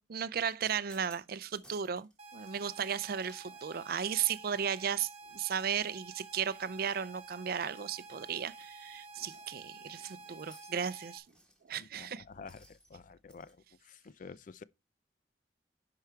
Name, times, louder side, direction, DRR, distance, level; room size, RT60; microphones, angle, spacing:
voice 1, 0.0-11.2 11.7-12.2, right 8 dB, 55° right, 0.5 m, -35 dB
sound 1, 0.7-2.1 2.4-4.9 5.3-13.5, right 1 dB, 5° left, 2.3 m, -63 dB
sound 2, 2.2-11.2, right 3 dB, 35° right, 1.0 m, -51 dB
voice 2, 11.8-12.6 12.9-13.6 13.9-14.6, left 5 dB, 50° left, 0.4 m, -49 dB
10.5 x 4.8 x 4.5 m
head